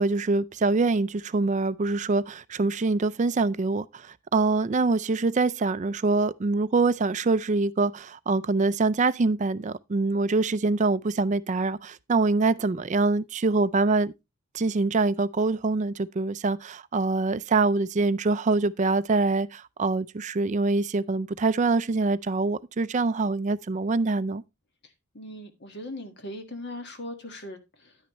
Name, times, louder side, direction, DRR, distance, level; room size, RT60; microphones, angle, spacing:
voice 1, 0.0-14.1 14.5-24.4, right 3 dB, 35° right, 0.4 m, -24 dB
voice 2, 25.1-28.0, left 1 dB, 50° left, 1.6 m, -39 dB
10.5 x 9.5 x 3.0 m
head